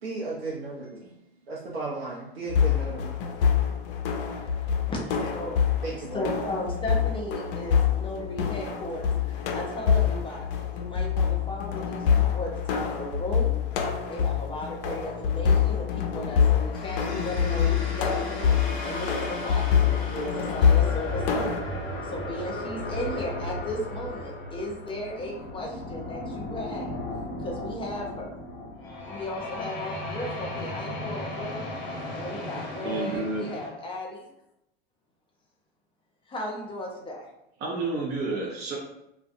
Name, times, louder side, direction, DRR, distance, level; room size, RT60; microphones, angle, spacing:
voice 1, 0.0-1.1 1.5-3.2 5.8-6.2, right 3 dB, 80° right, -5 dB, 0.6 m, -35 dB
sound 1, 2.5-21.6, left 7 dB, 65° left, 0.5 m, -26 dB
voice 2, 4.9-5.6 6.0-13.5 14.1-18.5 18.8-21.6 22.1-27.0 27.4-28.4 29.1-31.6 32.1-34.3 36.3-37.2, left 1 dB, 15° left, -2 dB, 0.6 m, -35 dB
sound 2, 16.7-33.7, left 1 dB, 40° left, 0.9 m, -35 dB
voice 3, 32.8-33.5 37.6-38.8, right 2 dB, 35° right, -3 dB, 0.6 m, -30 dB
2.4 x 2.2 x 2.6 m, 0.83 s
hypercardioid pair, 90°, 30 cm